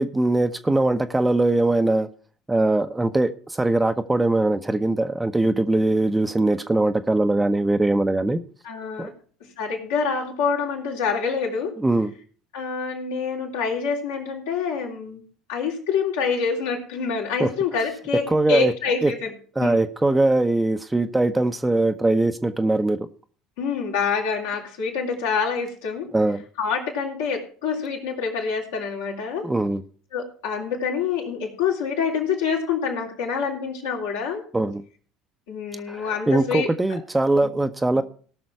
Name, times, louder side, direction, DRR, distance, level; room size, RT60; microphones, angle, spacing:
voice 1, 0.0-2.1 2.5-8.4 9.0-9.1 11.8-12.1 17.4-17.5 18.3-18.7 19.0-19.1 19.6-23.0 26.1-26.4 29.4-29.8 34.5-34.8 35.9-38.0, right 2 dB, 10° right, 8 dB, 0.9 m, -21 dB
voice 2, 8.6-9.1 9.6-11.8 12.5-15.2 15.5-19.3 19.6-19.8 23.6-26.1 26.6-29.5 30.1-34.4 35.5-36.7 37.4-37.5, left 6 dB, 75° left, -2 dB, 3.3 m, -26 dB
18.5 x 6.2 x 4.7 m, 0.43 s
hypercardioid pair, 65°, 0 cm